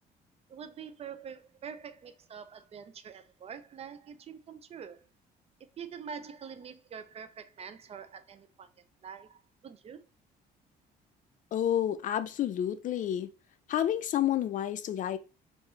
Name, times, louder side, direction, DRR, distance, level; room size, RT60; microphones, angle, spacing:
voice 1, 0.5-5.0 5.8-8.7 9.0-10.0, right 7 dB, 35° right, 0.5 m, -45 dB
voice 2, 11.5-13.3 13.7-15.2, left 11 dB, 50° left, 0.5 m, -29 dB
4.5 x 2.6 x 3.1 m
cardioid pair, 110°, 17 cm